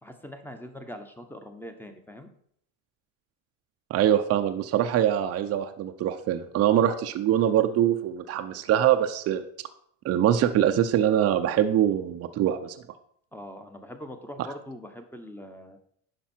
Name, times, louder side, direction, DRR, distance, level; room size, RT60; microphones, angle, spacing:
voice 1, 0.0-2.3 13.3-15.8, left 1 dB, 5° left, 6 dB, 1.0 m, -42 dB
voice 2, 3.9-9.4 10.0-12.7, right 10 dB, 40° right, 7 dB, 0.7 m, -23 dB
10.0 x 5.4 x 4.4 m, 0.66 s
supercardioid pair, 115°, 36 cm